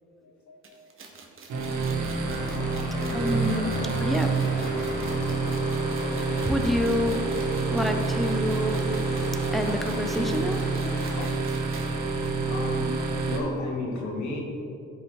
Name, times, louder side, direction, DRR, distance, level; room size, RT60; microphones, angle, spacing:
voice 1, 0.2-0.7 3.1-4.5 4.8-5.1 12.5-12.9 13.3-14.4, left 2 dB, 70° left, -2 dB, 2.4 m, -34 dB
sound 1, 0.6-11.9 12.2-12.3 12.6-12.7 13.6-13.7, right 4 dB, 45° right, 1.4 m, -45 dB
sound 2, 1.5-13.4, right 4 dB, 70° right, 1.6 m, -28 dB
sound 3, 2.2-11.3, left 9 dB, 85° left, 0.5 m, -39 dB
voice 2, 3.1-4.3 6.4-7.2 7.7-8.9 9.5-10.6, equal, ahead, 4 dB, 1.0 m, -27 dB
12.5 x 5.5 x 4.9 m, 2.7 s
cardioid pair, 90°, 30 cm